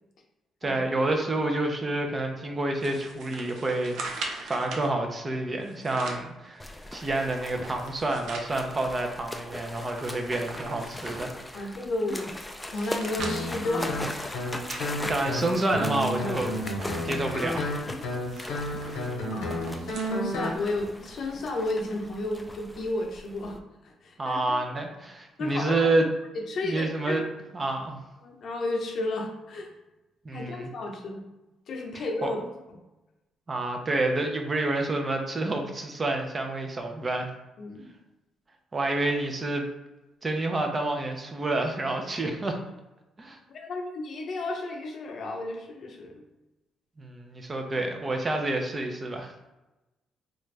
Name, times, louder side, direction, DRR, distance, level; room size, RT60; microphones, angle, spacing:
voice 1, 0.6-4.0 4.2-6.7 6.9-11.7 15.1-16.5 17.0-17.7 24.2-26.1 26.6-27.2 27.5-28.0 30.2-30.7 32.2-32.3 33.5-37.3 38.7-39.7 40.2-42.6 43.2-43.4 47.0-49.3, right 2 dB, 30° right, 3 dB, 0.6 m, -28 dB
sound 1, 2.8-4.9 5.6-6.3 6.8-8.5 9.0-9.1 9.3-11.3 11.9-15.7 16.1-16.2 16.6-20.2 20.6-20.7 21.5-21.6, right 3 dB, 75° right, 0.6 m, -41 dB
sound 2, 6.6-23.6, left 1 dB, 10° left, 0.4 m, -40 dB
voice 2, 11.5-12.3 12.7-15.3 19.3-23.6 23.8-24.6 25.4-25.9 26.5-27.2 28.2-29.7 30.3-31.2 31.7-32.4 37.6-37.9 43.5-46.3, left 2 dB, 60° left, 2 dB, 0.7 m, -33 dB
Guitar, 13.2-20.6, left 1 dB, 85° left, 0.9 m, -32 dB
3.4 x 2.5 x 3.2 m, 1.0 s
cardioid pair, 90°, 0 cm